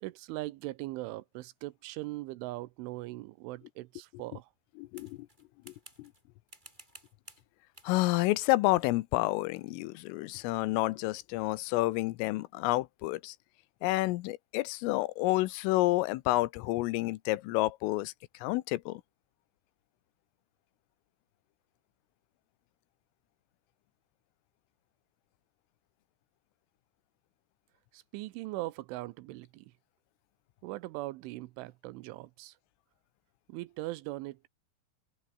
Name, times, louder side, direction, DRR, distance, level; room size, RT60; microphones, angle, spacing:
voice 1, 0.0-4.5 27.9-29.7 30.6-32.6 33.5-34.5, right 19 dB, 80° right, 3.1 m, -40 dB
voice 2, 4.8-5.2 5.7-6.1 7.8-13.4 13.8-18.1 18.4-19.0, left 19 dB, 85° left, 3.4 m, -29 dB
sound 1, 4.9-6.2 6.5-7.5 7.7-8.0 8.7-8.9, right 1 dB, 10° right, 4.5 m, -55 dB
open air
omnidirectional pair, 5.8 m